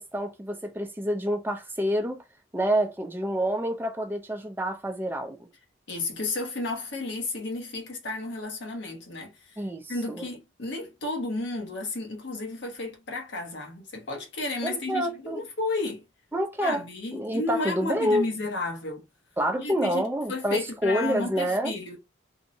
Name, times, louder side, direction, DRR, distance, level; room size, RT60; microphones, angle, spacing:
voice 1, 0.0-2.2 2.5-5.5 9.6-10.2 14.6-15.4 16.3-16.8 17.1-18.3 19.4-21.7, equal, 10° right, 0.4 m, -28 dB
voice 2, 5.9-9.6 9.9-16.1 16.6-19.1 19.6-22.0, left 2 dB, 60° left, 0.8 m, -32 dB
2.7 x 2.0 x 2.6 m
head